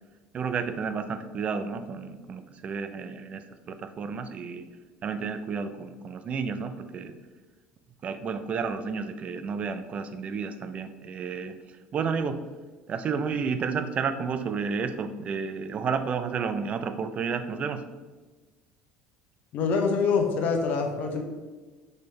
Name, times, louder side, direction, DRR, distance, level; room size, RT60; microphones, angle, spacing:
voice 1, 0.3-4.7 5.0-7.1 8.0-11.5 11.9-12.4 12.9-17.8, right 5 dB, 40° right, 9 dB, 0.4 m, -31 dB
voice 2, 19.5-21.2, left 5 dB, 55° left, 4 dB, 0.7 m, -25 dB
4.2 x 3.2 x 3.2 m, 1.3 s
supercardioid pair, 105°, 4 cm